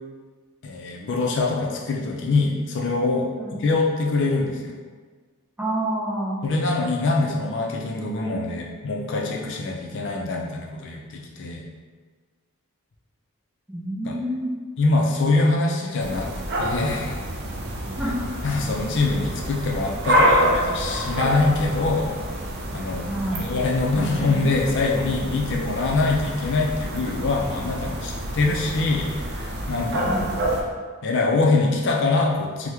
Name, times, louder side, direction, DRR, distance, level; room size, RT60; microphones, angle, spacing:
voice 1, 0.6-4.7 6.4-11.6 14.0-14.2 14.8-16.3 16.6-17.2 18.4-22.1 22.7-30.1 31.0-32.7, left 3 dB, 55° left, -1 dB, 0.4 m, -24 dB
voice 2, 5.6-6.4 13.7-14.5 18.0-18.3 23.1-23.5 24.0-24.5 29.9-30.3, right 1 dB, 10° right, -7 dB, 0.6 m, -28 dB
sound 1, 16.0-30.6, equal, 50° right, 0.4 m, -27 dB
2.9 x 2.1 x 3.4 m, 1.5 s
head